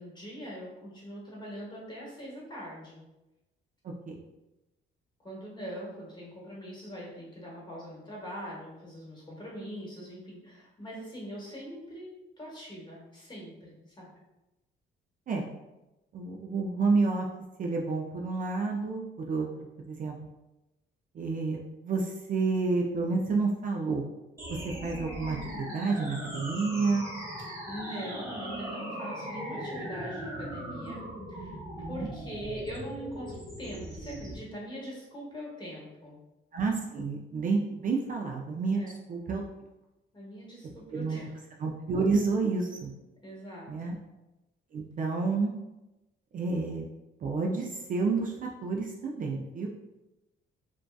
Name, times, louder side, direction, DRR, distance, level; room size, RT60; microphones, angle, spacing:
voice 1, 0.0-3.0 5.2-12.1 12.4-14.1 27.4-31.6 31.9-36.2 38.8-39.0 40.1-41.3 43.2-44.0, equal, 20° left, -5 dB, 1.0 m, -42 dB
voice 2, 16.1-17.3 17.6-20.1 21.1-24.0 24.5-27.1 31.9-32.1 36.5-39.4 40.9-41.2 41.6-42.9 43.7-44.0 44.7-45.5 46.3-46.9 47.2-49.7, right 4 dB, 45° right, 0 dB, 0.4 m, -30 dB
sound 1, 24.4-34.4, equal, 15° right, 0.8 m, -39 dB
2.6 x 2.2 x 2.2 m, 0.99 s
cardioid pair, 90°, 20 cm